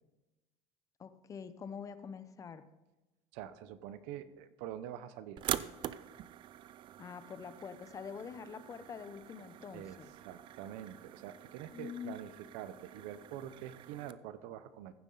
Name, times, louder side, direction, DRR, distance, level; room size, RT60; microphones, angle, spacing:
voice 1, 1.0-2.6 7.0-10.1 11.7-12.2, left 6 dB, 25° left, 12 dB, 0.7 m, -45 dB
voice 2, 3.3-5.4 9.7-14.9, right 11 dB, 80° right, 13 dB, 0.8 m, -46 dB
sound 1, 5.4-14.1, right 12 dB, 40° right, 0.5 m, -45 dB
15.0 x 7.3 x 3.9 m, 1.0 s
cardioid pair, 140°, 12 cm